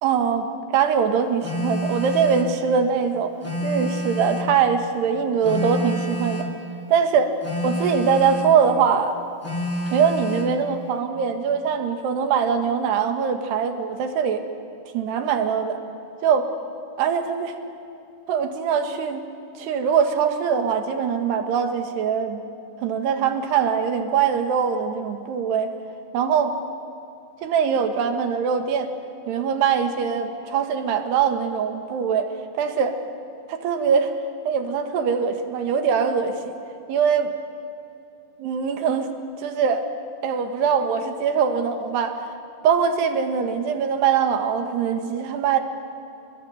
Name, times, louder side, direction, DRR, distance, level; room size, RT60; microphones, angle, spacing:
voice 1, 0.0-0.5 0.7-3.3 3.6-6.5 6.9-7.4 7.6-9.2 9.9-14.4 14.9-15.8 16.2-16.5 17.0-17.6 18.3-19.2 19.6-22.4 22.8-25.7 26.1-26.5 27.4-28.9 29.3-32.3 32.6-33.0 33.5-34.1 34.5-36.4 36.9-37.3 38.4-39.1 39.4-39.9 40.2-42.3 42.6-45.6, right 6 dB, 90° right, 6 dB, 3.8 m, -22 dB
Telephone, 1.4-2.6 3.4-4.6 5.4-6.6 7.4-8.6 9.4-10.6, left 1 dB, 5° left, 2.4 m, -28 dB
29.5 x 21.5 x 9.0 m, 2.7 s
omnidirectional pair, 4.7 m